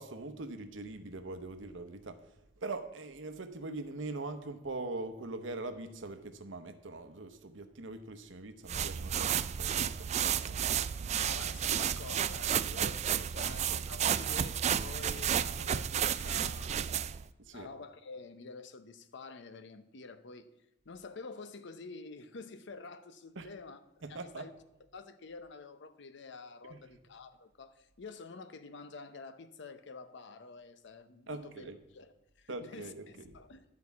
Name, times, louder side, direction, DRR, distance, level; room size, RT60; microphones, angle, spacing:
voice 1, 0.0-11.2 13.3-13.5 17.4-17.7 23.3-23.6 24.0-24.5 26.6-27.0 31.3-31.8 32.5-33.4, right 2 dB, 70° right, 0.9 m, -43 dB
sound 1, 8.7-17.2, right 9 dB, 35° right, 0.3 m, -32 dB
voice 2, 11.1-17.1 17.5-20.5 20.8-23.8 24.1-24.5 24.9-33.6, left 4 dB, 65° left, 0.7 m, -48 dB
10.5 x 4.7 x 8.2 m
head